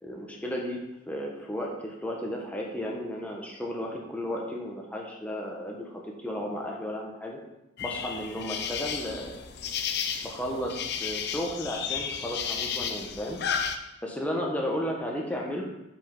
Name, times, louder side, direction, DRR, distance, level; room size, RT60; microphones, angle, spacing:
voice 1, 0.0-7.4 7.8-9.4 10.2-13.4 14.0-15.6, equal, 5° left, -1 dB, 1.0 m, -34 dB
sound 1, 7.8-13.8, left 7 dB, 50° left, 0.5 m, -33 dB
5.5 x 5.1 x 5.3 m, 0.93 s
head